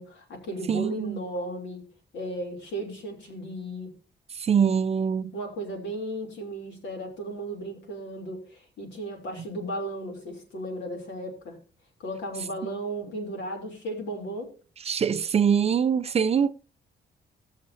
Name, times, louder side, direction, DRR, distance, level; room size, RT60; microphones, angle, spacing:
voice 1, 0.0-1.8 2.1-3.9 5.3-11.6 12.0-14.5, right 1 dB, 80° left, 2.9 m, -35 dB
voice 2, 0.7-1.2 4.3-5.3 14.8-16.5, right 7 dB, 35° right, 0.4 m, -23 dB
18.5 x 6.5 x 2.6 m
cardioid pair, 115°, 19 cm